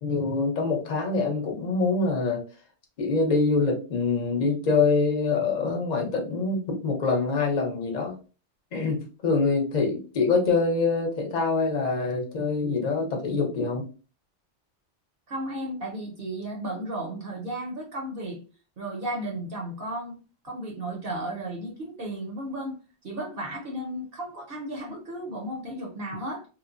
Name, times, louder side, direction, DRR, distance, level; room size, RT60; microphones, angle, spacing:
voice 1, 0.0-2.4 3.0-8.1 8.7-13.9, left 4 dB, 45° left, 2 dB, 0.8 m, -25 dB
voice 2, 15.3-18.4 18.8-20.2 20.4-22.8 23.0-26.5, right 1 dB, 60° right, -1 dB, 0.8 m, -34 dB
3.1 x 2.0 x 2.4 m, 0.35 s
omnidirectional pair, 1.2 m